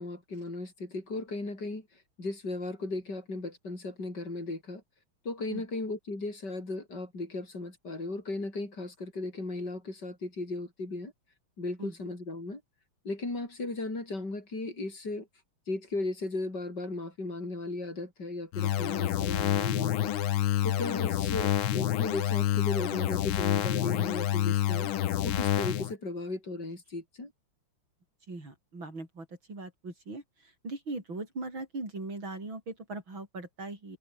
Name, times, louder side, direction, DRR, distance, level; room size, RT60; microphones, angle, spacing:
voice 1, 0.0-4.8 5.2-11.1 11.6-12.6 13.0-15.3 15.7-24.9 25.2-27.3, left 2 dB, 55° left, 7.5 m, -36 dB
sound 1, 18.5-25.9, left 11 dB, 80° left, 1.9 m, -28 dB
voice 2, 28.3-30.2 30.6-34.0, right 2 dB, 70° right, 7.7 m, -39 dB
omnidirectional pair, 2.2 m